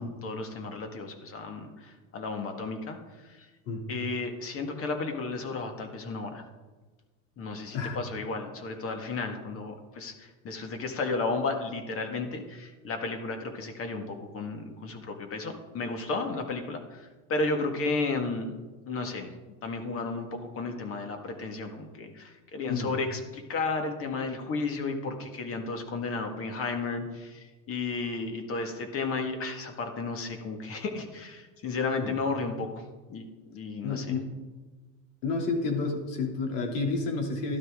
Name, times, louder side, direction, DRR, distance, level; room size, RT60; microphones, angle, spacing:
voice 1, 0.0-3.0 3.4-3.5 3.9-6.4 7.4-18.6 18.9-19.3 19.6-32.8 33.1-33.2 33.5-34.1, left 3 dB, 35° left, 5 dB, 1.9 m, -33 dB
voice 2, 33.8-34.4 35.2-37.6, left 3 dB, 80° left, 1 dB, 3.0 m, -30 dB
12.5 x 12.5 x 3.8 m, 1.2 s
supercardioid pair, 125°, 38 cm